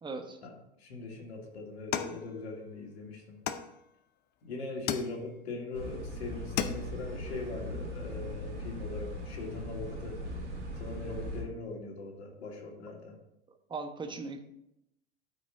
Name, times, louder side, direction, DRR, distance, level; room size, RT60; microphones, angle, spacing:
voice 1, 0.0-0.4 13.7-14.4, right 3 dB, 15° right, 5 dB, 1.1 m, -38 dB
voice 2, 0.8-3.4 4.4-10.2 10.8-13.1, left 3 dB, 65° left, 1 dB, 2.5 m, -41 dB
sound 1, 1.9-2.9 3.5-4.2 4.9-5.6 6.0-6.1 6.4-7.1, left 9 dB, 30° left, 0.6 m, -36 dB
sound 2, 5.7-11.4, equal, 85° right, 2.6 m, -39 dB
12.5 x 5.1 x 3.8 m, 0.82 s
figure-of-eight pair, 90°, 34 cm